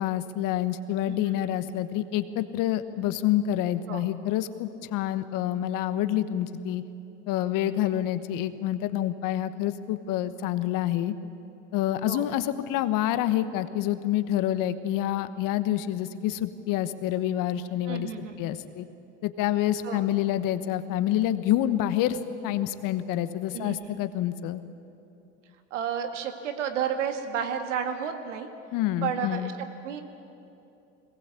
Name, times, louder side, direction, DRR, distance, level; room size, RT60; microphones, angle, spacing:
voice 1, 0.0-6.8 7.3-11.1 11.7-18.9 19.2-22.2 22.4-24.6 28.7-29.5, left 12 dB, 65° left, 12 dB, 1.2 m, -27 dB
voice 2, 17.9-18.5 19.8-20.0 23.5-23.9 25.7-28.5 29.0-30.0, right 8 dB, 90° right, 7 dB, 1.8 m, -32 dB
21.5 x 18.5 x 8.3 m, 2.8 s
hypercardioid pair, 70°, 35 cm